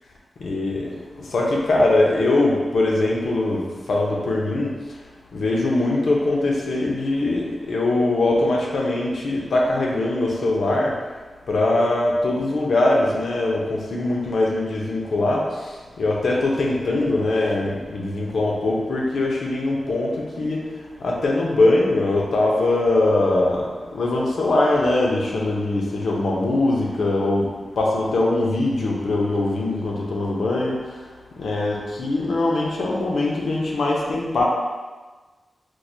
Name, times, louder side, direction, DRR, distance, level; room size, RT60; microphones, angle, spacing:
voice 1, 0.4-0.9 1.3-4.7 5.3-10.9 11.5-15.4 16.0-20.1 20.4-20.6 21.0-23.7 23.9-27.5 27.8-30.9 31.4-34.4, left 2 dB, 90° left, -2 dB, 0.6 m, -21 dB
4.5 x 2.1 x 2.7 m, 1.3 s
wide cardioid pair, 175°, 0 cm